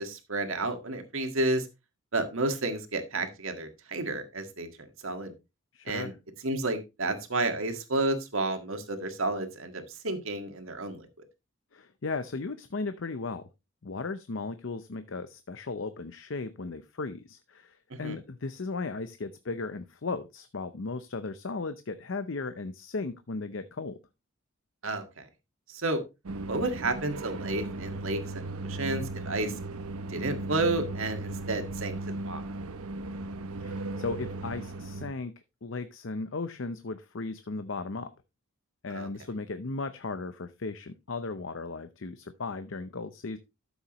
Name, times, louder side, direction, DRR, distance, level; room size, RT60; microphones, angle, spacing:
voice 1, 0.0-1.7 2.1-5.3 5.9-6.1 6.4-11.0 17.9-18.2 24.8-25.3 25.7-26.0 26.5-29.5 30.1-32.7 38.9-39.1, right 2 dB, 70° right, 6 dB, 1.8 m, -31 dB
voice 2, 5.7-6.1 11.7-13.5 13.8-24.0 33.6-35.3 35.6-38.1 38.8-43.4, left 3 dB, 60° left, 11 dB, 0.6 m, -36 dB
sound 1, 26.2-35.1, right 2 dB, 90° right, 0.8 m, -37 dB
13.0 x 7.1 x 3.0 m, 0.25 s
head